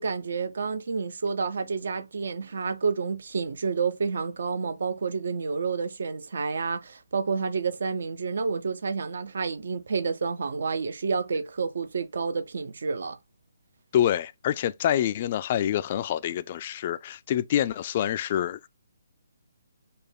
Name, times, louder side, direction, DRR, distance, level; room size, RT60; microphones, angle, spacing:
voice 1, 0.0-13.2, right 5 dB, 65° right, 0.6 m, -29 dB
voice 2, 13.9-18.7, left 11 dB, 40° left, 0.3 m, -26 dB
5.0 x 2.2 x 4.3 m
hypercardioid pair, 150°, 0 cm